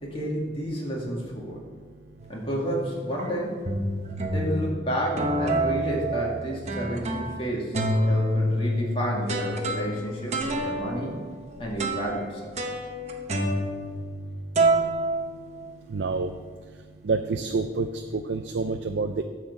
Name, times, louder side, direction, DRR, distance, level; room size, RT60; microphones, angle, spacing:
voice 1, 0.0-1.6 2.3-3.6 4.3-7.7 8.1-11.2 11.6-12.4, right 1 dB, 30° left, -3 dB, 2.1 m, -30 dB
sound 1, 2.2-2.6 3.2-3.3 3.7-4.7 5.2-7.4 7.7-14.3 14.6-16.0, right 1 dB, 35° right, 0.9 m, -27 dB
voice 2, 15.9-16.3 17.0-19.2, right 4 dB, 75° right, 6 dB, 0.5 m, -28 dB
10.0 x 4.4 x 7.0 m, 1.5 s
head